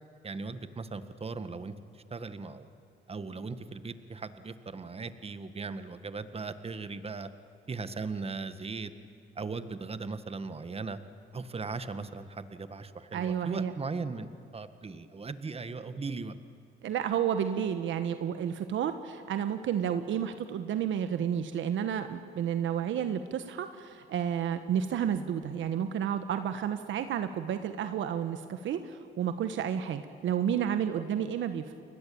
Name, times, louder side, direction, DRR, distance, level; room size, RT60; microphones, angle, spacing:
voice 1, 0.2-2.7 3.1-7.3 7.7-8.9 9.4-11.0 11.3-16.3 31.0-31.1, right 4 dB, 30° right, 11 dB, 1.7 m, -38 dB
voice 2, 13.1-13.7 16.8-31.7, right 9 dB, 75° right, 9 dB, 1.4 m, -31 dB
30.0 x 22.0 x 8.8 m, 2.6 s
cardioid pair, 90°, 20 cm